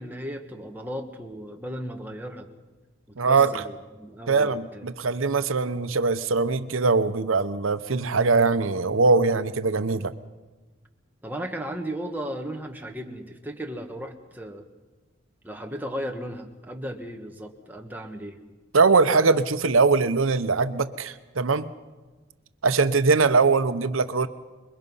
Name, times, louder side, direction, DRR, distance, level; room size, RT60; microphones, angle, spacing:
voice 1, 0.0-2.5 3.2-4.9 11.2-14.7 15.4-18.4, equal, 10° right, 2 dB, 1.4 m, -35 dB
voice 2, 3.2-3.6 4.3-10.1 18.7-21.7 22.6-24.3, right 4 dB, 85° right, 11 dB, 0.8 m, -22 dB
26.5 x 22.0 x 5.6 m, 1.3 s
head